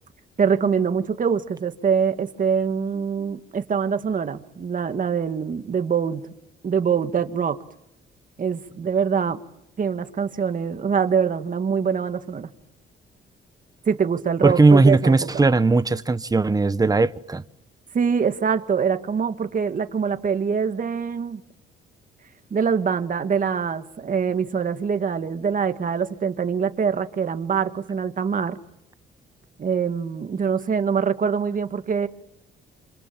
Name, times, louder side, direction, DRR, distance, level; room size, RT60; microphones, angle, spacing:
voice 1, 0.4-6.3 6.6-7.6 8.4-9.4 9.8-12.5 13.9-15.5 17.9-21.4 22.5-28.6 29.6-32.1, right 6 dB, 40° right, 1.9 m, -24 dB
voice 2, 14.4-17.4, right 3 dB, 20° right, 1.1 m, -18 dB
26.5 x 26.5 x 7.5 m
cardioid pair, 90°, 20 cm